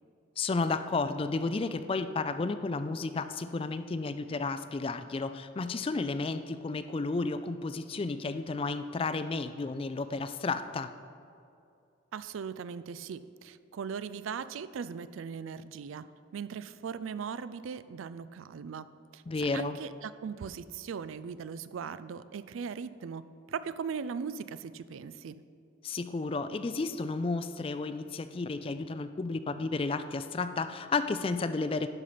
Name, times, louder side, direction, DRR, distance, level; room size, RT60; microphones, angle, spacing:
voice 1, 0.4-10.9 19.3-19.8 25.8-31.9, left 3 dB, 30° left, 11 dB, 0.3 m, -32 dB
voice 2, 12.1-16.0 16.3-18.9 19.1-23.2 23.5-25.4, right 6 dB, 85° right, 14 dB, 0.4 m, -39 dB
11.0 x 5.6 x 5.0 m, 2.5 s
head